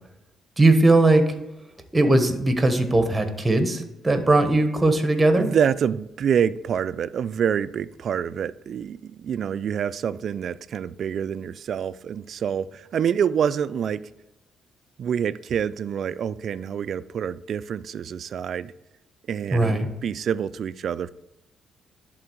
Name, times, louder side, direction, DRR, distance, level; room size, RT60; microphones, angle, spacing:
voice 1, 0.6-1.2 1.9-5.5 19.5-19.9, right 2 dB, 20° right, 7 dB, 1.2 m, -19 dB
voice 2, 5.3-14.1 15.0-18.7 19.3-21.1, right 8 dB, 60° right, 16 dB, 0.3 m, -27 dB
11.0 x 3.8 x 4.6 m, 0.91 s
cardioid pair, 90°, 0 cm